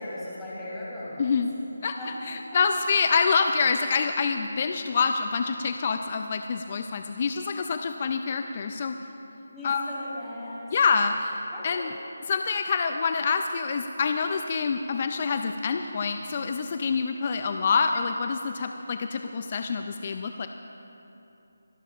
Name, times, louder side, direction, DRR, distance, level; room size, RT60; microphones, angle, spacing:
voice 1, 0.0-1.3 1.9-2.1 2.7-2.8 9.5-10.7 11.5-11.8, left 1 dB, 10° left, -10 dB, 3.5 m, -37 dB
voice 2, 1.2-1.5 1.8-2.0 2.2-9.0 9.6-9.8 10.7-11.9 12.3-20.5, left 5 dB, 35° left, 6 dB, 0.5 m, -26 dB
28.0 x 12.0 x 2.5 m, 2.9 s
figure-of-eight pair, 165°, 0 cm